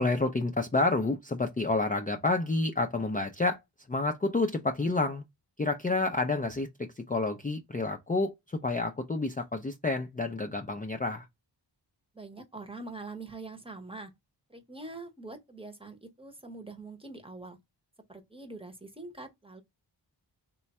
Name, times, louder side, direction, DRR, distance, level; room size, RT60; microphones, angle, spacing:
voice 1, 0.0-3.6 3.9-5.2 5.6-11.3, left 3 dB, 20° left, 0.4 m, -29 dB
voice 2, 12.1-14.1 14.5-17.6 18.1-19.6, right 3 dB, 10° right, 0.8 m, -44 dB
3.2 x 2.3 x 4.0 m
wide cardioid pair, 55°, 44 cm